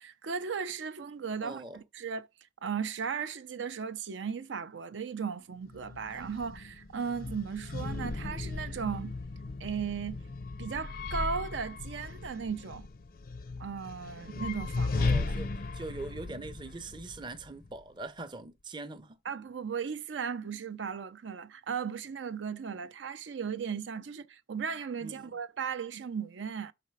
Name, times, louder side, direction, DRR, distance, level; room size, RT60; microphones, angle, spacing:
voice 1, 0.0-2.3 2.6-9.1 9.6-10.2 10.6-12.9 13.6-15.3 19.3-26.7, right 6 dB, 80° right, 0.5 m, -36 dB
voice 2, 1.4-1.8 14.9-19.2 25.0-25.4, right 2 dB, 25° right, 0.5 m, -42 dB
sound 1, 5.7-17.8, left 3 dB, 50° left, 0.4 m, -36 dB
5.6 x 4.2 x 4.8 m
head